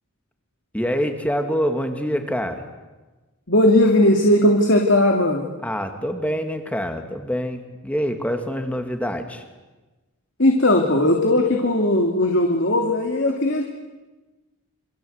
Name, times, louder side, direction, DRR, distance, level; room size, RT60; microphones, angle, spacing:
voice 1, 0.7-2.6 5.6-9.4, equal, 5° left, 6 dB, 2.4 m, -25 dB
voice 2, 3.5-5.5 10.4-13.6, left 1 dB, 55° left, 2 dB, 2.8 m, -18 dB
28.5 x 25.0 x 8.2 m, 1.2 s
head